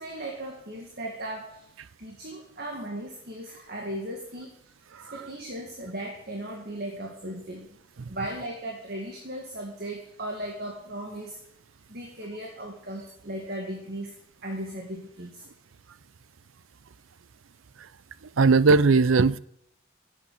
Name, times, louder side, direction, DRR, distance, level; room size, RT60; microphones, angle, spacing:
voice 1, 0.0-1.6 2.0-4.5 5.1-7.7 8.1-11.4 11.9-14.1 14.4-15.4, right 1 dB, 50° right, 2.0 m, -37 dB
voice 2, 4.9-5.3 8.0-8.1 17.8-17.9 18.2-19.4, right 4 dB, 75° right, 0.5 m, -20 dB
11.5 x 8.8 x 8.3 m
head